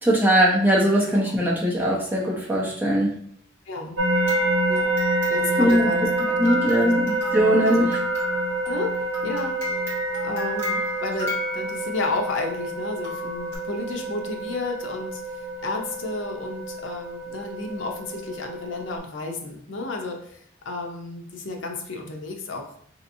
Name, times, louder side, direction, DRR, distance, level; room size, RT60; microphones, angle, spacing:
voice 1, 0.0-3.1 5.6-5.9 6.4-8.0, equal, 10° right, -4 dB, 0.7 m, -20 dB
voice 2, 3.7-4.0 4.7-4.9 5.3-6.1 6.4-7.2 7.5-7.9 8.7-9.0 9.2-9.6 10.2-22.7, left 3 dB, 75° left, 2 dB, 0.6 m, -32 dB
sound 1, 4.0-19.0, right 2 dB, 85° right, 0.7 m, -28 dB
sound 2, 4.1-12.2 13.0-13.6, left 1 dB, 15° left, 1.0 m, -33 dB
3.3 x 2.8 x 2.6 m, 0.63 s
head